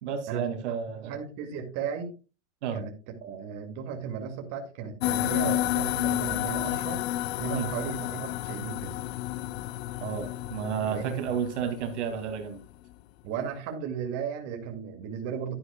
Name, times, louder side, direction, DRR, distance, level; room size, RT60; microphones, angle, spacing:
voice 1, 0.0-1.1 2.6-2.8 7.5-7.7 10.0-12.6, right 7 dB, 70° right, 6 dB, 2.5 m, -31 dB
voice 2, 1.1-2.1 2.7-2.9 3.2-7.0 7.4-9.0 10.9-11.2 13.2-15.5, right 7 dB, 45° right, 4 dB, 2.3 m, -35 dB
sound 1, 5.0-12.6, left 15 dB, 60° left, 0.7 m, -31 dB
12.0 x 9.8 x 2.3 m, 0.31 s
hypercardioid pair, 115°, 36 cm